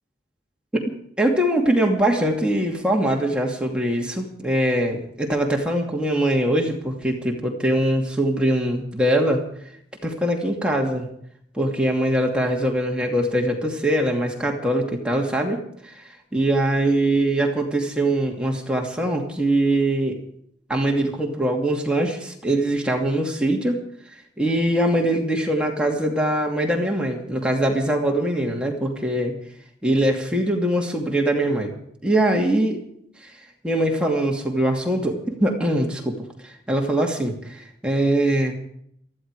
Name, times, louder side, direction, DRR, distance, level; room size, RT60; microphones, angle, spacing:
voice 1, 1.2-9.4 10.0-11.1 11.5-15.6 15.8-16.0 16.3-20.2 20.7-23.8 24.4-29.3 29.8-31.7 32.0-32.8 33.6-36.1 36.4-38.5, right 1 dB, 5° right, 0 dB, 2.5 m, -22 dB
19.0 x 14.5 x 4.9 m, 0.69 s
head